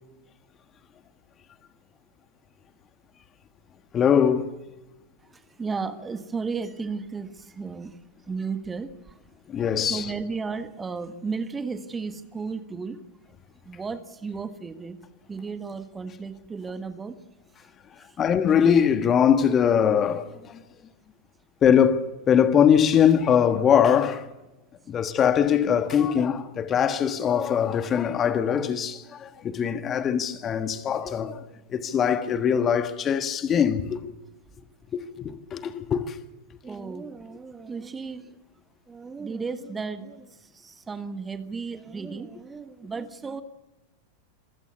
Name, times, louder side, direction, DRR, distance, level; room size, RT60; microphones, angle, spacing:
voice 1, 3.9-4.6 9.5-10.1 18.2-20.6 21.6-24.3 24.9-31.4 31.7-34.1 34.9-36.2, left 8 dB, 25° left, 1.5 m, -22 dB
voice 2, 5.2-9.2 9.9-13.0 13.6-15.0 15.3-17.2 17.6-17.7 18.0-18.2 36.6-38.4 38.9-43.4, right 4 dB, 15° right, 1.4 m, -34 dB
26.5 x 16.0 x 8.2 m
figure-of-eight pair, 90°, 0 cm